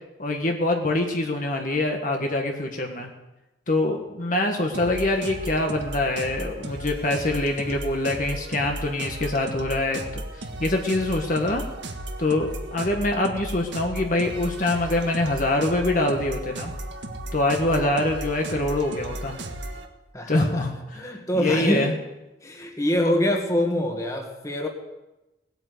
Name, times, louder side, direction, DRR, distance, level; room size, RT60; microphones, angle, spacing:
voice 1, 0.2-3.1 3.7-11.6 12.2-16.7 17.3-19.4 20.3-21.9, left 2 dB, 45° left, 2 dB, 1.6 m, -25 dB
sound 1, 4.7-19.9, right 1 dB, 75° right, 1.7 m, -35 dB
voice 2, 20.1-20.6 20.9-21.9 22.4-24.7, equal, 15° left, 2 dB, 2.0 m, -25 dB
19.0 x 8.9 x 7.9 m, 1.0 s
head